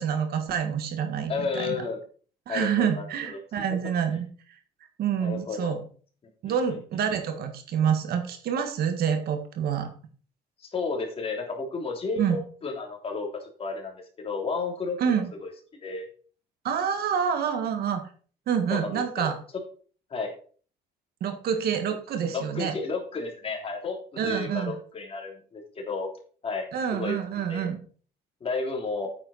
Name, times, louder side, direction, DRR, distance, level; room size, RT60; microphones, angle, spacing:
voice 1, 0.0-1.8 2.5-4.3 5.0-5.8 6.4-9.9 12.2-12.4 15.0-15.3 16.6-18.0 18.5-19.4 21.2-22.7 24.2-24.7 26.7-27.8, right 8 dB, 65° right, 7 dB, 1.7 m, -27 dB
voice 2, 1.3-2.0 2.5-3.4 5.2-5.7 6.5-6.6 10.6-15.0 15.4-15.5 15.8-16.1 18.7-19.3 20.1-20.3 22.3-24.0 24.2-26.1 26.4-27.2 27.5-27.7 28.4-29.1, left 4 dB, 35° left, 1 dB, 3.0 m, -32 dB
8.8 x 7.7 x 4.2 m, 0.42 s
cardioid pair, 110°, 17 cm